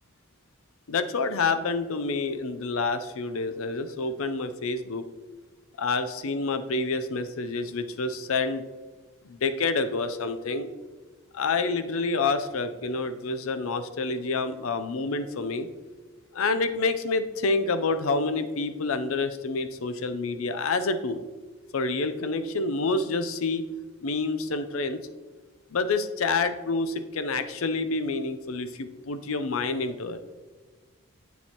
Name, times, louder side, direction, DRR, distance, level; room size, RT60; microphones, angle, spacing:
voice 1, 0.9-5.1 5.8-8.6 9.2-10.7 11.3-15.7 16.3-21.2 21.7-23.7 24.0-25.0 25.7-30.2, left 3 dB, 75° left, 10 dB, 0.5 m, -28 dB
8.0 x 7.0 x 2.9 m, 1.3 s
head